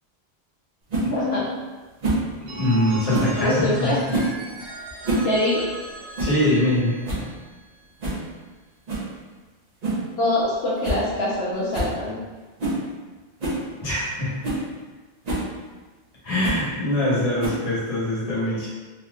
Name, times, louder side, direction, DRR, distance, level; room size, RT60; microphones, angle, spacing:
sound 1, 0.9-1.1 2.0-2.3 3.1-3.4 4.1-4.4 4.9-5.3 5.6-5.7 6.2-6.4 6.7-6.8 7.0-7.3 8.0-8.2 8.9-9.1 9.8-10.1 10.4-10.5 10.8-11.0 11.3-11.4 11.7-12.0 12.6-12.8 13.4-13.6 14.1-14.2 14.4-14.6 15.2-15.5 16.4-16.6 17.4-17.8, right 2 dB, 45° right, 0.7 m, -26 dB
voice 1, 1.1-1.5 3.4-3.9 5.2-5.6 10.2-12.1, left 1 dB, 80° left, -7 dB, 1.0 m, -23 dB
voice 2, 2.4-3.9 6.2-7.0 13.8-14.3 16.2-18.7, left 1 dB, 40° left, -7 dB, 1.0 m, -23 dB
Telephone, 2.5-8.2, right 2 dB, 85° right, 0.9 m, -39 dB
3.5 x 2.6 x 2.3 m, 1.3 s
omnidirectional pair, 1.1 m